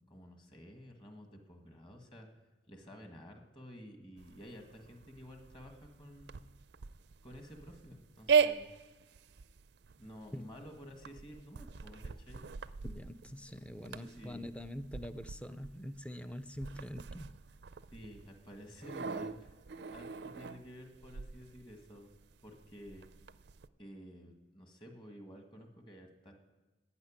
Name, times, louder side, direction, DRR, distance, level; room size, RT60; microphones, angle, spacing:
voice 1, 0.0-2.3 2.7-6.4 7.2-8.7 10.0-12.5 13.5-14.5 17.9-19.5 19.9-22.1 22.4-23.1 23.8-26.3, equal, 25° left, 3 dB, 1.8 m, -52 dB
sound 1, 4.2-23.7, right 6 dB, 70° right, 0.4 m, -39 dB
voice 2, 12.8-17.4, equal, 5° left, 11 dB, 0.5 m, -44 dB
12.0 x 9.6 x 8.8 m, 1.2 s
head